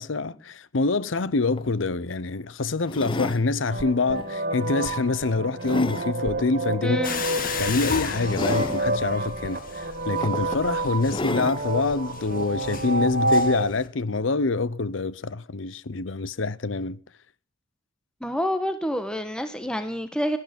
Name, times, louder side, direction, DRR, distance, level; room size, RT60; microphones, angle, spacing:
voice 1, 0.0-7.0 7.6-17.0, left 3 dB, 70° left, 0.8 m, -26 dB
sound 1, 1.2-1.3 1.6-1.8 2.9-3.5 4.1-4.3 4.9-6.1 7.4-7.6 8.3-8.8 9.7-9.8 10.2-10.7 11.1-11.6 12.4-12.5, left 2 dB, 25° left, 0.8 m, -32 dB
sound 2, 3.7-13.7, right 2 dB, 50° right, 1.5 m, -29 dB
voice 2, 6.8-7.2 18.2-20.4, equal, 5° left, 1.2 m, -28 dB
sound 3, 7.0-13.9, left 5 dB, 45° left, 2.1 m, -35 dB
18.0 x 12.5 x 5.3 m
head